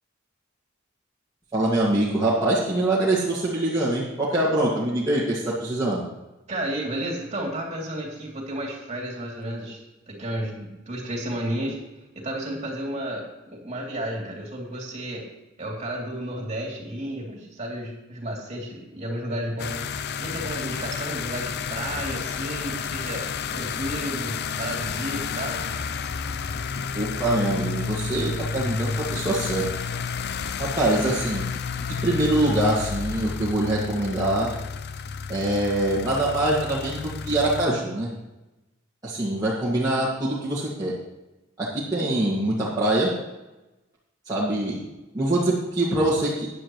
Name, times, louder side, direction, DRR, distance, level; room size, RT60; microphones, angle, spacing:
voice 1, 1.5-6.0 26.9-29.7 30.6-31.4 31.9-34.5 35.3-38.1 39.0-40.9 41.6-43.1 44.3-44.8 45.1-46.5, right 1 dB, 20° right, -8 dB, 2.0 m, -24 dB
voice 2, 6.5-11.8 12.1-15.2 15.6-19.8 20.2-23.3 23.5-25.6, right 1 dB, 35° right, -2 dB, 3.0 m, -32 dB
sound 1, 19.6-37.7, left 5 dB, 55° left, 0.5 m, -31 dB
14.0 x 9.9 x 3.1 m, 1.0 s
head